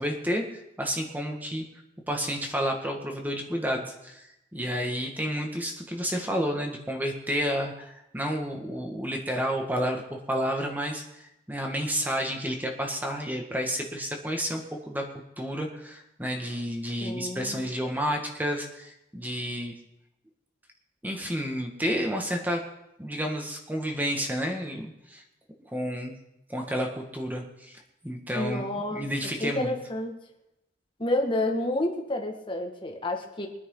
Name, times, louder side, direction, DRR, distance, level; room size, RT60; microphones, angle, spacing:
voice 1, 0.0-1.6 2.1-15.1 15.4-19.7 21.0-22.6 23.0-25.2 25.7-26.2 26.5-29.8, equal, 10° right, 2 dB, 1.8 m, -31 dB
voice 2, 17.0-17.6 28.3-29.1 29.4-30.1 31.0-33.5, left 1 dB, 25° left, 2 dB, 1.9 m, -29 dB
23.5 x 9.6 x 3.9 m, 0.86 s
head